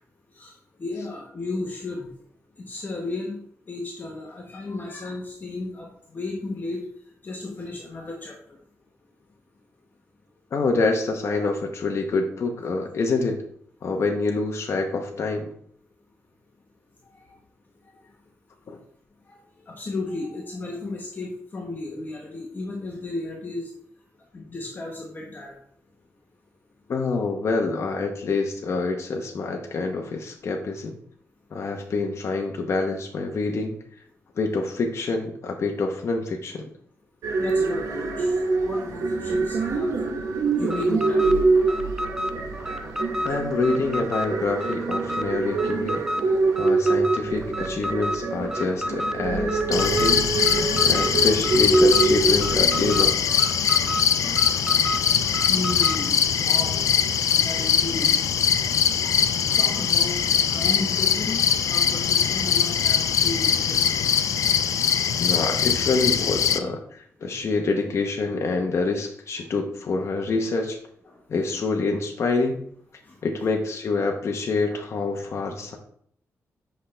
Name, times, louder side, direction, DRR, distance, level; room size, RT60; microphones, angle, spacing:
voice 1, 0.8-2.1 2.6-3.4 3.7-6.8 7.2-8.3 19.3-19.4 19.6-23.7 24.3-25.5 37.4-39.9 40.6-41.6 45.9-46.0 54.2-54.3 55.5-56.8 57.3-58.1 59.6-60.2 60.5-64.0 66.6-66.7 71.1-71.2 73.1-73.2 74.7-74.8 75.1-75.2, left 2 dB, 35° left, -1 dB, 1.3 m, -34 dB
voice 2, 10.5-13.4 13.8-15.5 18.7-18.8 26.9-31.0 31.5-33.8 34.4-36.7 43.2-46.0 46.6-53.1 55.4-55.5 65.2-70.8 71.3-72.6 73.2-75.8, left 3 dB, 55° left, 2 dB, 0.8 m, -26 dB
sound 1, 37.2-53.0, right 3 dB, 90° right, 1.1 m, -25 dB
Alarm, 40.6-56.1, equal, 10° right, 0.6 m, -32 dB
sound 2, 49.7-66.6, left 8 dB, 80° left, 0.5 m, -22 dB
8.2 x 5.6 x 3.3 m, 0.65 s
wide cardioid pair, 110°, 5 cm